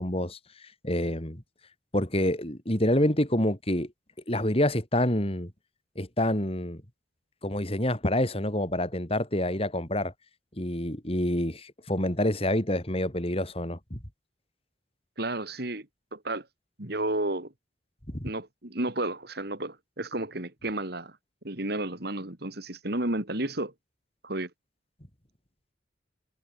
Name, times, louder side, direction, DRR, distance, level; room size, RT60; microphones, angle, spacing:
voice 1, 0.0-1.4 1.9-3.9 4.3-5.5 6.0-6.8 7.4-10.1 10.6-14.0 18.1-18.3, left 1 dB, 30° left, 4.1 m, -27 dB
voice 2, 15.2-16.5 16.8-17.5 18.2-21.2 21.4-23.7 24.2-24.5, right 1 dB, 55° right, 3.1 m, -32 dB
head